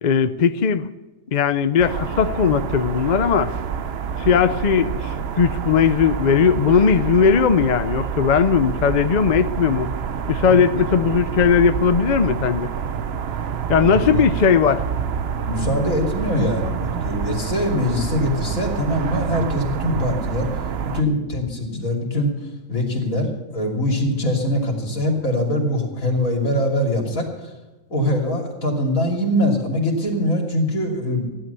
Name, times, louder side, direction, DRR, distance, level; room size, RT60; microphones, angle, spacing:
voice 1, 0.0-0.9 1.3-3.5 4.2-9.9 10.3-12.7 13.7-14.8, left 6 dB, 45° left, 12 dB, 0.6 m, -18 dB
sound 1, 1.8-21.0, right 7 dB, 55° right, 0.9 m, -27 dB
voice 2, 15.5-20.5 20.8-22.3 22.7-27.3 27.9-31.4, left 1 dB, 75° left, 1 dB, 3.4 m, -22 dB
15.5 x 11.5 x 6.9 m, 1.2 s
omnidirectional pair, 1.4 m